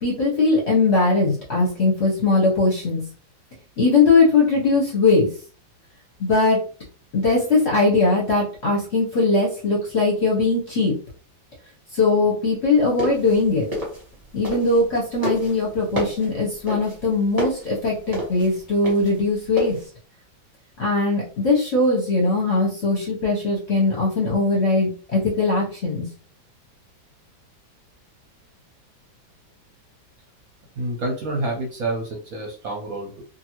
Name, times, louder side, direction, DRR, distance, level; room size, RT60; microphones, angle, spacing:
voice 1, 0.0-3.0 3.8-5.3 6.2-6.6 7.1-10.9 11.9-13.6 14.3-19.8 20.8-26.1, left 3 dB, 45° left, -5 dB, 0.9 m, -20 dB
sound 1, 12.8-14.9 15.2-19.8, equal, 25° right, 0.8 m, -29 dB
voice 2, 30.8-33.2, right 2 dB, 65° right, -1 dB, 0.9 m, -28 dB
2.7 x 2.6 x 2.9 m, 0.41 s
omnidirectional pair, 2.0 m